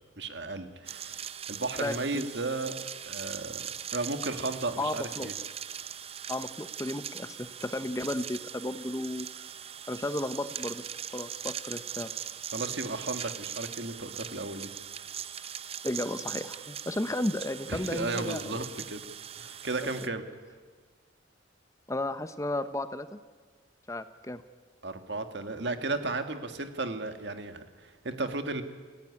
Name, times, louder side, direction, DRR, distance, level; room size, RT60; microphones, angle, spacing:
voice 1, 0.2-2.8 3.1-5.3 12.5-14.7 17.7-19.0 19.4-20.2 24.8-28.6, right 3 dB, 60° right, 8 dB, 1.9 m, -34 dB
sound 1, 0.9-20.1, right 9 dB, 30° right, 0.6 m, -40 dB
voice 2, 1.8-2.3 4.8-5.3 6.3-9.3 9.9-10.8 11.1-12.1 15.8-18.6 19.8-20.1 21.9-23.2 23.9-24.4, left 1 dB, 15° left, 11 dB, 0.8 m, -34 dB
28.0 x 16.5 x 9.8 m, 1.5 s
head